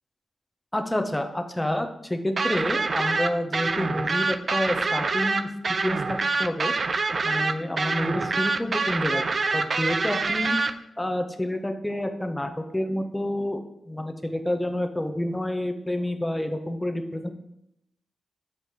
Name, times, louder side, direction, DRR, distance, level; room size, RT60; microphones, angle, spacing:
voice 1, 0.7-5.5 5.8-6.0 6.4-6.7 7.2-9.2 9.5-10.6 11.0-17.3, left 1 dB, 10° left, 6 dB, 0.5 m, -28 dB
sound 1, 2.4-10.7, right 3 dB, 40° right, 0.3 m, -26 dB
6.4 x 2.9 x 5.2 m, 0.80 s
wide cardioid pair, 135°, 0 cm